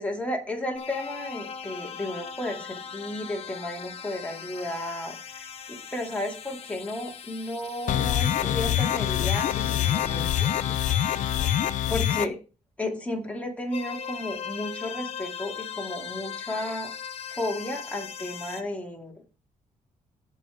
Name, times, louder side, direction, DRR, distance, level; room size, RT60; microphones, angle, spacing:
voice 1, 0.0-10.5 11.9-12.4 12.8-16.9 17.3-19.2, left 1 dB, 10° left, 1 dB, 2.5 m, -33 dB
sound 1, 0.8-11.8 13.7-18.6, left 7 dB, 50° left, 1.0 m, -39 dB
sound 2, 7.9-12.3, left 11 dB, 75° left, 0.6 m, -25 dB
15.5 x 5.5 x 3.5 m, 0.33 s
wide cardioid pair, 160°, 13 cm